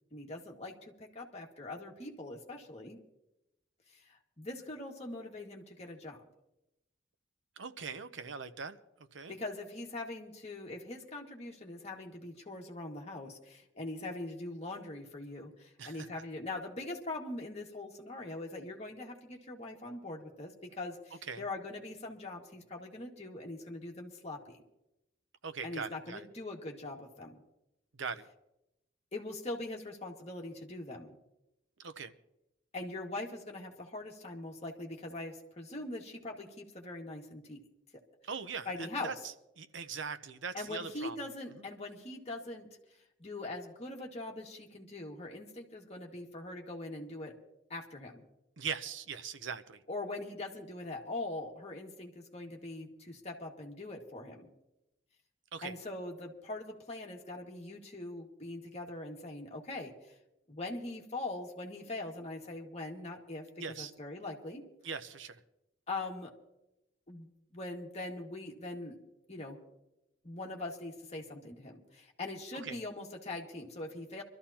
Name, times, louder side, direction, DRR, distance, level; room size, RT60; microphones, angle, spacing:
voice 1, 0.1-3.0 3.9-6.2 9.3-24.6 25.6-27.4 29.1-31.2 32.7-37.6 37.9-38.0 38.7-39.2 40.5-42.7 43.2-47.4 47.7-48.2 49.9-54.5 55.6-59.9 60.5-64.7 65.9-66.3 67.1-69.0 69.3-69.6 70.2-74.2, left 2 dB, 35° left, 0 dB, 1.9 m, -42 dB
voice 2, 7.6-8.8 9.1-9.4 15.8-16.1 21.3-21.4 25.4-26.3 28.0-28.2 31.8-32.1 38.2-41.2 48.6-49.8 55.5-55.7 63.6-63.9 64.8-65.4 72.5-72.8, right 6 dB, 85° right, 11 dB, 0.8 m, -41 dB
24.5 x 13.5 x 2.9 m, 0.88 s
head